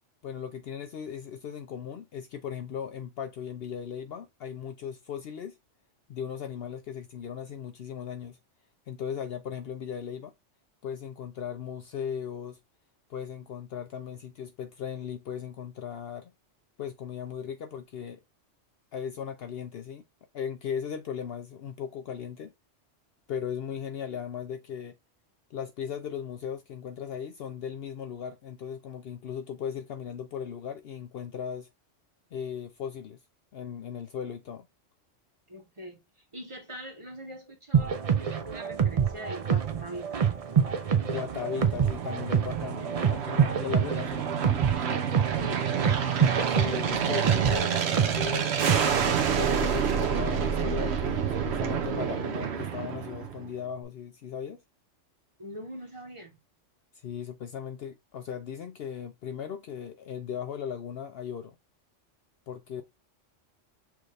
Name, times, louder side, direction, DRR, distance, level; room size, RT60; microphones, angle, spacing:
voice 1, 0.2-5.6 6.1-8.4 8.9-10.3 10.8-12.6 13.1-16.3 16.8-18.2 18.9-20.0 20.3-22.5 23.3-25.0 25.5-31.7 32.3-33.2 33.5-34.7 41.0-44.3 46.5-54.6 56.9-61.6 62.5-62.8, left 8 dB, 60° left, 0.7 m, -37 dB
voice 2, 35.5-36.0 36.3-40.2 45.4-45.7 55.4-56.4, right 1 dB, 25° right, 1.0 m, -42 dB
sound 1, 37.7-49.0, right 7 dB, 45° right, 0.5 m, -27 dB
Aircraft, 40.8-53.6, right 7 dB, 65° right, 0.9 m, -29 dB
6.2 x 2.5 x 3.3 m
omnidirectional pair, 1.3 m